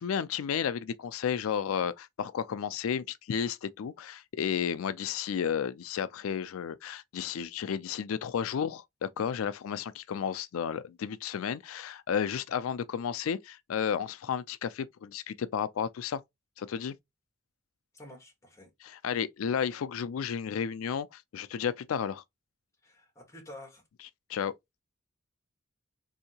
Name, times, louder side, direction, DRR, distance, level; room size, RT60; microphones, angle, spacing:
voice 1, 0.0-16.2 16.6-17.0 18.8-22.2 24.3-24.5, left 7 dB, 85° left, 0.4 m, -32 dB
voice 2, 17.9-18.7 22.8-23.8, left 1 dB, 15° left, 1.2 m, -49 dB
3.5 x 2.7 x 2.7 m
head